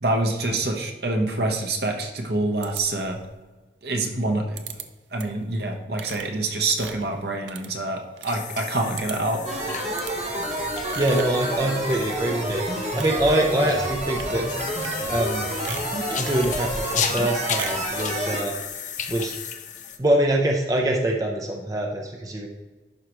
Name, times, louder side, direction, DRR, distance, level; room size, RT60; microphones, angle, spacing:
voice 1, 0.0-3.2 3.8-4.6 5.1-9.4, right 2 dB, 60° right, 3 dB, 1.1 m, -26 dB
sound 1, 2.6-3.3 4.6-4.9 5.2-5.5 5.9-8.3 8.6-8.7 8.9-9.4 9.9-10.2 10.9-11.4 11.8-12.4 12.7-13.2 14.1-14.3 14.6-15.3 15.6-16.6 17.6-17.9, right 8 dB, 80° right, 0.6 m, -39 dB
sound 2, 8.2-20.0, left 7 dB, 45° left, 0.6 m, -34 dB
sound 3, 9.5-18.4, right 1 dB, 35° right, 1.2 m, -29 dB
voice 2, 11.0-12.6 12.9-14.5 15.1-15.5 16.1-18.6 19.1-19.3 20.0-22.5, right 1 dB, 20° right, 1 dB, 0.7 m, -24 dB
11.5 x 4.9 x 3.1 m, 1.2 s
head